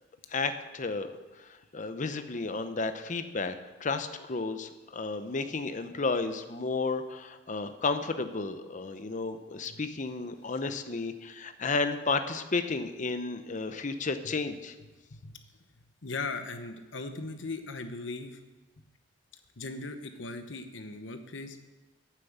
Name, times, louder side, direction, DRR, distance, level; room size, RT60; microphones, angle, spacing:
voice 1, 0.3-1.1 1.4-3.6 3.8-14.7, left 3 dB, 45° left, 9 dB, 0.8 m, -32 dB
voice 2, 16.0-18.4 19.6-21.6, left 3 dB, 85° left, 7 dB, 1.1 m, -38 dB
9.3 x 7.6 x 8.1 m, 1.2 s
head